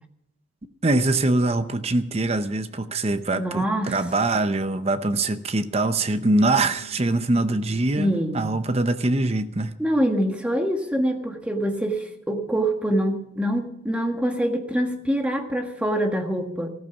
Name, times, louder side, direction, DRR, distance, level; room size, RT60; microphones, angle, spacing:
voice 1, 0.8-9.7, right 2 dB, 30° right, 11 dB, 0.7 m, -23 dB
voice 2, 3.3-4.0 8.0-8.5 9.8-16.7, equal, 5° right, 4 dB, 1.5 m, -25 dB
14.5 x 14.0 x 5.9 m, 0.75 s
head